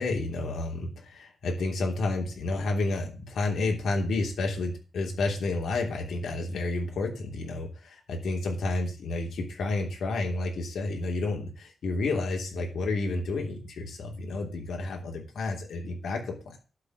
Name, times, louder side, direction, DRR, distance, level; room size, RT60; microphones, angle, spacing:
voice 1, 0.0-16.6, left 3 dB, 80° left, 1 dB, 3.2 m, -30 dB
11.5 x 4.8 x 6.7 m, 0.35 s
wide cardioid pair, 120°, 0 cm